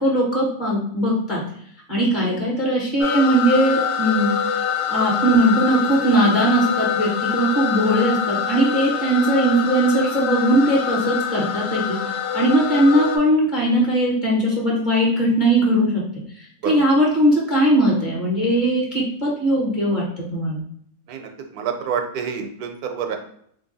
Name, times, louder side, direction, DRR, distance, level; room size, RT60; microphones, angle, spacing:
voice 1, 0.0-1.4 1.9-4.3 4.9-12.0 12.3-16.0 16.6-20.0 20.3-20.6, right 1 dB, 35° left, -4 dB, 1.3 m, -19 dB
sound 1, 3.0-13.2, left 8 dB, 80° left, 1.1 m, -25 dB
voice 2, 21.1-23.2, right 7 dB, 80° right, 5 dB, 1.1 m, -28 dB
2.9 x 2.6 x 3.9 m, 0.66 s
omnidirectional pair, 1.6 m